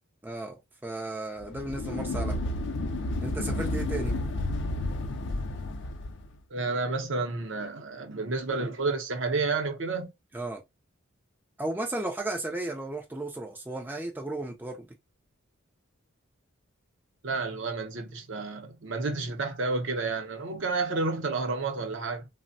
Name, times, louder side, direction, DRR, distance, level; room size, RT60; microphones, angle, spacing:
voice 1, 0.2-2.4 3.2-4.1 10.3-10.6 11.6-14.9, right 2 dB, 10° right, 0.3 m, -34 dB
sound 1, 1.4-6.3, left 1 dB, 55° left, 0.4 m, -31 dB
voice 2, 6.5-10.1 17.2-22.3, right 3 dB, 60° right, 0.6 m, -30 dB
3.3 x 2.0 x 2.5 m
head